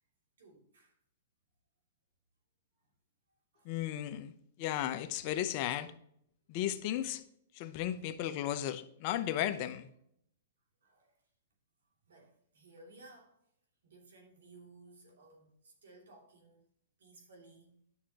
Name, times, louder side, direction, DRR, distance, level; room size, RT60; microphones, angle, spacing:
voice 1, 0.4-1.0 3.5-3.7 7.7-8.3 10.8-11.2 12.1-13.4 13.8-16.7 17.0-17.8, right 2 dB, 80° right, 2.7 m, -58 dB
voice 2, 3.7-4.3 4.6-5.9 6.5-7.2 7.6-9.9, left 12 dB, 45° left, 0.7 m, -35 dB
9.7 x 6.3 x 2.9 m
hypercardioid pair, 135°, 0 cm